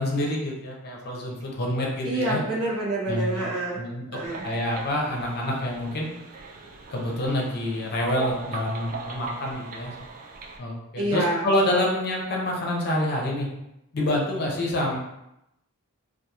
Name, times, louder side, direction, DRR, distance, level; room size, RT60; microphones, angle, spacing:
voice 1, 0.0-2.4 3.1-3.5 3.8-4.0 4.4-6.1 6.9-9.9 10.6-13.5 13.9-15.0, left 1 dB, 45° left, -1 dB, 0.5 m, -27 dB
voice 2, 2.0-3.8 4.1-4.5 10.9-11.4, right 2 dB, 75° right, -3 dB, 0.8 m, -27 dB
sound 1, 4.2-10.6, right 4 dB, 40° right, 0.3 m, -39 dB
2.8 x 2.3 x 2.3 m, 0.87 s
head